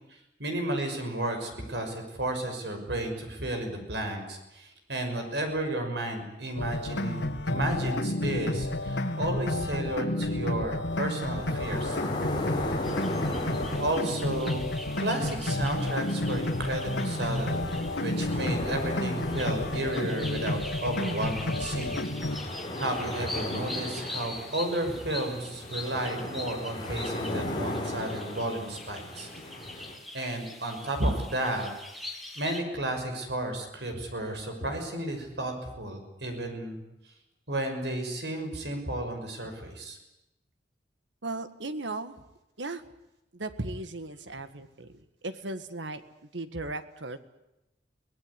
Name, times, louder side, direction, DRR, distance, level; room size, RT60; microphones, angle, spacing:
voice 1, 0.1-12.0 13.8-14.7 15.0-17.7 18.0-22.0 22.8-29.3 30.1-31.7 32.3-36.8 37.5-40.0, right 1 dB, 70° right, 5 dB, 6.1 m, -32 dB
sound 1, 6.6-22.4, left 1 dB, 85° left, 2.3 m, -31 dB
sound 2, 10.9-30.0, left 1 dB, 25° left, 5.0 m, -37 dB
sound 3, 12.8-32.6, left 2 dB, ahead, 2.9 m, -43 dB
voice 2, 41.2-42.1 42.6-42.8 43.3-47.2, right 2 dB, 90° right, 11 dB, 1.8 m, -37 dB
24.0 x 18.5 x 10.0 m, 0.93 s
head